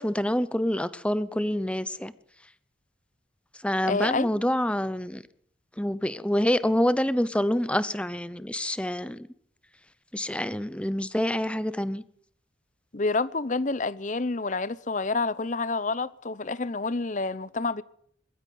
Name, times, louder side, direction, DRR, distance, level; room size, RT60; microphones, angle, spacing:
voice 1, 0.0-2.1 3.6-5.2 5.8-9.3 10.1-12.0, left 1 dB, 5° left, 0.8 m, -27 dB
voice 2, 3.9-4.3 12.9-17.8, left 3 dB, 40° left, 0.8 m, -28 dB
22.0 x 13.0 x 9.4 m
head